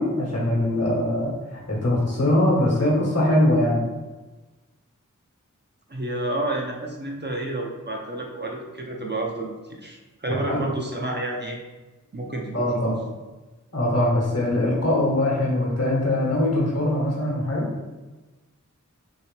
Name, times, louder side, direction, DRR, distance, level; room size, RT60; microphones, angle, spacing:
voice 1, 0.0-3.9 10.5-10.7 12.5-12.9 13.7-17.7, left 1 dB, 50° left, -4 dB, 1.1 m, -22 dB
voice 2, 5.9-11.6 12.1-13.0, right 2 dB, 35° right, 0 dB, 0.5 m, -30 dB
3.2 x 2.8 x 3.1 m, 1.2 s
wide cardioid pair, 40°, 32 cm